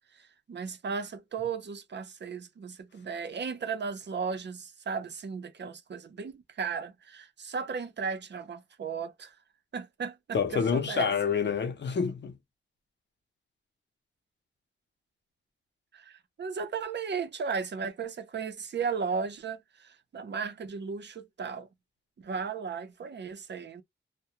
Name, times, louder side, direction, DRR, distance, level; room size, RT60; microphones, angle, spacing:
voice 1, 0.1-9.4 9.7-11.1 15.9-21.7 22.2-23.8, right 5 dB, 60° right, 0.6 m, -35 dB
voice 2, 10.3-12.4, left 6 dB, 60° left, 0.6 m, -28 dB
2.2 x 2.1 x 2.8 m
wide cardioid pair, 160°, 20 cm